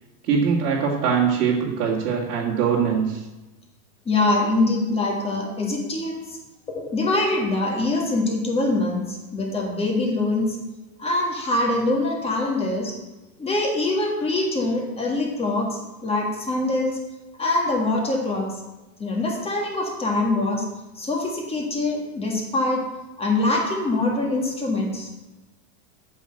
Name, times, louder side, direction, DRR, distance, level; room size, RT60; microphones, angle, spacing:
voice 1, 0.2-3.2, right 6 dB, 85° right, -5 dB, 2.2 m, -22 dB
voice 2, 4.1-6.4 6.8-10.6 11.0-12.9 13.4-17.0 17.4-18.5 19.0-20.7 21.0-22.8 23.2-25.1, left 2 dB, 10° left, 0 dB, 1.8 m, -24 dB
8.3 x 6.4 x 7.6 m, 1.1 s
supercardioid pair, 160°, 46 cm